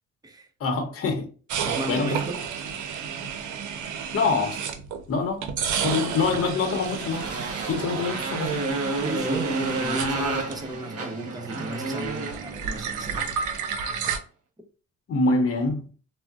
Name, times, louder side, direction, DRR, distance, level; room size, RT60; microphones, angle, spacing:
voice 1, 0.6-1.3 1.9-2.2 4.1-4.7 5.1-5.5 5.8-7.3 7.6-8.7 15.1-15.9, left 3 dB, 50° left, 0.8 m, -25 dB
sound 1, 1.5-5.0 5.4-11.0 11.2-14.2, right 7 dB, 75° right, 0.6 m, -31 dB
voice 2, 1.6-2.4 9.0-13.4, right 1 dB, 15° right, 0.6 m, -35 dB
Motorcycle, 6.7-14.1, right 3 dB, 50° right, 1.0 m, -31 dB
3.7 x 2.1 x 2.3 m
cardioid pair, 90°, 30 cm